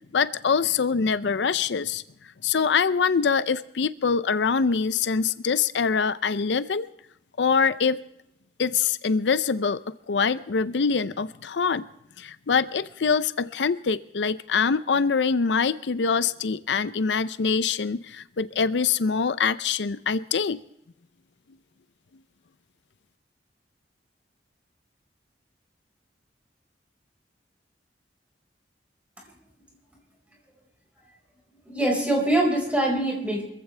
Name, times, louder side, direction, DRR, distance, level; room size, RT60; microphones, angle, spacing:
voice 1, 0.1-2.0 2.4-6.9 7.4-8.0 8.6-11.9 12.2-20.6, left 5 dB, 80° left, 15 dB, 0.5 m, -24 dB
voice 2, 31.6-33.4, right 1 dB, 10° right, -1 dB, 4.9 m, -23 dB
24.5 x 15.5 x 3.3 m, 0.81 s
head